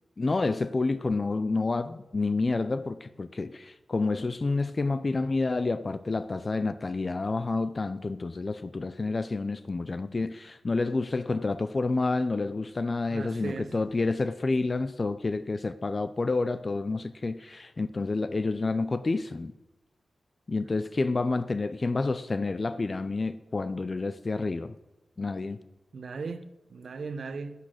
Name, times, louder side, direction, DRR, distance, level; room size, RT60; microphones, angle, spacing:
voice 1, 0.2-19.5 20.5-24.7 25.2-25.6, left 3 dB, 35° left, 0.5 m, -29 dB
voice 2, 13.1-13.8 25.9-27.6, right 4 dB, 70° right, 0.9 m, -37 dB
14.5 x 8.4 x 6.4 m
wide cardioid pair, 130°, 0 cm